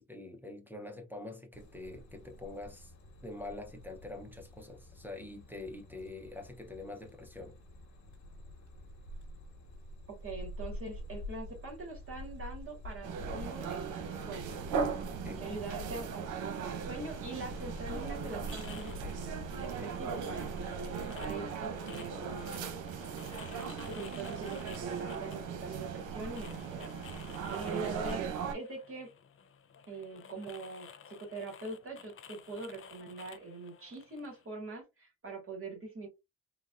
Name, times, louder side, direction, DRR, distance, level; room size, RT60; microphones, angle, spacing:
voice 1, 0.0-2.9 3.2-7.6 15.2-15.4 27.8-28.0, left 2 dB, 5° right, 0.7 m, -45 dB
sound 1, 1.5-21.3, left 1 dB, 70° left, 1.3 m, -47 dB
voice 2, 10.1-14.6 15.4-22.7 23.5-28.3 28.5-29.1 29.9-36.1, right 3 dB, 45° right, 1.8 m, -43 dB
sound 2, 13.0-28.5, right 6 dB, 85° right, 0.8 m, -38 dB
sound 3, 16.9-34.5, left 7 dB, 45° left, 0.6 m, -54 dB
3.8 x 2.3 x 2.4 m
cardioid pair, 90°, 30 cm